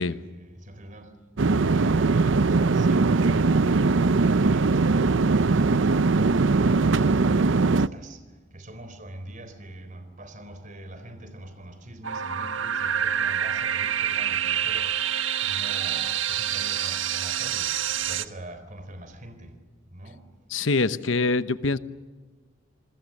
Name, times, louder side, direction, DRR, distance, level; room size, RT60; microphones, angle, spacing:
voice 1, 0.0-19.6 19.9-20.2, right 1 dB, 40° right, 3.9 m, -43 dB
sound 1, 1.4-7.9, right 3 dB, 70° right, 0.6 m, -21 dB
sound 2, 12.0-18.2, right 9 dB, 90° right, 1.1 m, -27 dB
voice 2, 20.5-21.8, left 3 dB, 80° left, 1.0 m, -24 dB
28.5 x 22.0 x 6.6 m
head